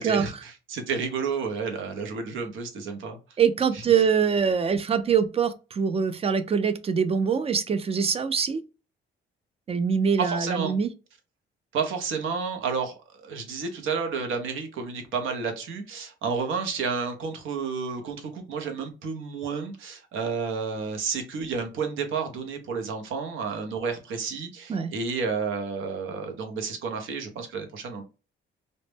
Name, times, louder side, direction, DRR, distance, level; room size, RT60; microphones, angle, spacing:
voice 1, 0.0-3.2 3.7-3.8 10.2-10.7 11.7-28.0, right 5 dB, 80° right, 0.7 m, -31 dB
voice 2, 3.4-8.6 9.7-10.9 24.7-24.9, right 6 dB, 30° right, 0.3 m, -24 dB
2.1 x 2.0 x 3.1 m
cardioid pair, 90°, 20 cm